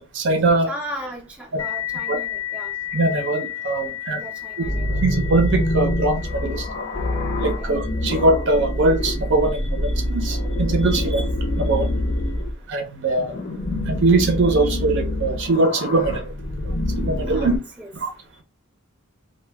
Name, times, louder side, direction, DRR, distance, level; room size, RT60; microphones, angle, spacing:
voice 1, 0.0-0.7 1.5-1.6 2.1-2.2 2.9-4.2 5.0-6.7 7.4-11.3 11.6-11.9 12.7-13.4 13.9-16.2 17.0-17.5 17.9-18.1, right 2 dB, 55° right, 4 dB, 0.5 m, -21 dB
voice 2, 0.6-2.7 4.2-5.0 7.6-7.7 11.0-11.1 17.2-17.5 17.8-17.9, equal, 5° right, -1 dB, 0.5 m, -36 dB
sound 1, 1.6-10.8, left 12 dB, 80° left, 0.4 m, -34 dB
sound 2, 4.6-12.6 13.1-17.6, left 1 dB, 40° left, 0.6 m, -25 dB
2.1 x 2.1 x 3.3 m, 0.31 s
head